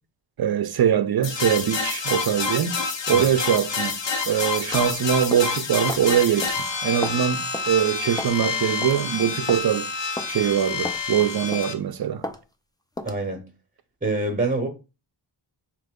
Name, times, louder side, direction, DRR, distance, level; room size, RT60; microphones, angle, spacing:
voice 1, 0.4-2.8 3.1-4.0 4.3-6.5 6.8-9.9 10.3-12.2, right 9 dB, 50° right, 0.5 m, -22 dB
sound 1, 1.2-11.7, left 4 dB, 65° left, 0.7 m, -28 dB
sound 2, 4.7-4.9 5.3-5.5 5.9-6.1 6.4-6.6 7.0-7.2 7.5-7.7 8.2-8.4 8.8-9.0 9.5-9.6 10.2-10.3 10.8-11.0 11.5-11.8 12.2-12.4 13.0-13.2, left 2 dB, 10° left, 0.3 m, -33 dB
voice 2, 13.0-13.4 14.0-14.7, right 2 dB, 15° right, 0.9 m, -25 dB
3.9 x 3.0 x 3.6 m
wide cardioid pair, 95°, 47 cm